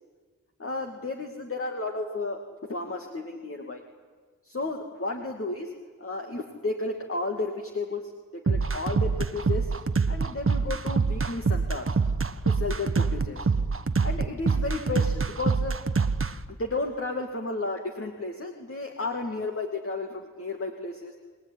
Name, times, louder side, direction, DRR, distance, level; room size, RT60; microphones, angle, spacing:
voice 1, 0.6-2.4 2.7-3.8 4.5-5.7 6.0-8.0 8.3-9.7 10.1-12.0 12.4-13.5 14.0-15.8 16.6-21.1, left 3 dB, 40° left, 3 dB, 2.5 m, -33 dB
sound 1, 8.5-16.3, right 4 dB, 40° right, 1.2 m, -25 dB
28.5 x 20.0 x 9.9 m, 1.4 s
wide cardioid pair, 70°, 33 cm